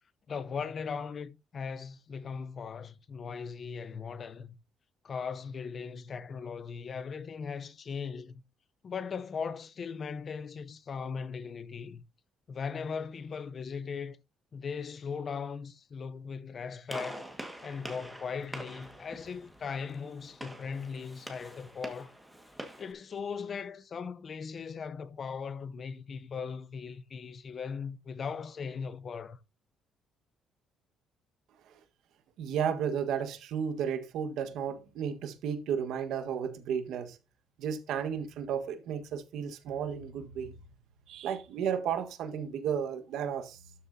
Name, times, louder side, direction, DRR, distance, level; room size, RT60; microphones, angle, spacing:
voice 1, 0.3-4.6 5.0-8.4 8.8-12.0 12.5-14.2 14.5-17.2 17.6-22.1 22.8-29.4, left 6 dB, 35° left, 0.7 m, -38 dB
Gunshot gunfire, 16.9-22.9, equal, 5° right, 1.7 m, -45 dB
voice 2, 32.4-37.2 37.6-40.6 41.1-43.6, right 8 dB, 75° right, 1.5 m, -33 dB
12.5 x 7.2 x 2.8 m
cardioid pair, 145°, 0 cm